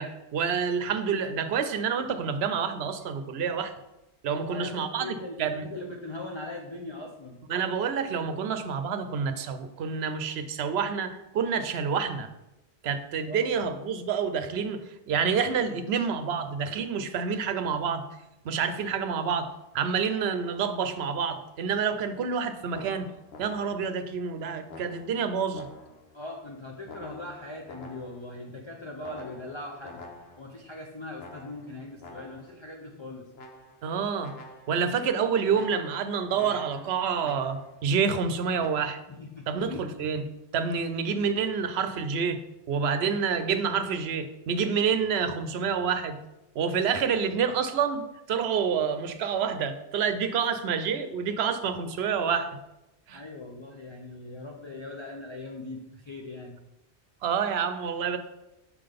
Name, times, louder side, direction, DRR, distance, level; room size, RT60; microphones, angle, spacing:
voice 1, 0.0-3.8 4.2-5.6 7.5-12.3 12.8-18.0 18.4-23.1 23.4-25.7 33.8-34.3 34.7-39.0 39.5-40.2 40.5-42.4 42.7-46.2 46.6-52.6 53.1-53.2 57.2-58.2, right 6 dB, 75° right, 10 dB, 0.9 m, -28 dB
voice 2, 4.3-7.4 13.2-13.4 26.1-30.0 30.4-33.3 39.1-39.9 53.1-56.6, left 2 dB, 35° left, 0 dB, 0.6 m, -40 dB
sound 1, 22.7-24.0 24.7-26.2 26.9-28.4 29.0-30.6 31.2-32.6 33.3-33.9 34.2-34.9 35.5-37.8 38.6-38.9, left 2 dB, 70° left, 1.1 m, -47 dB
6.4 x 3.8 x 5.1 m, 0.92 s
omnidirectional pair, 1.1 m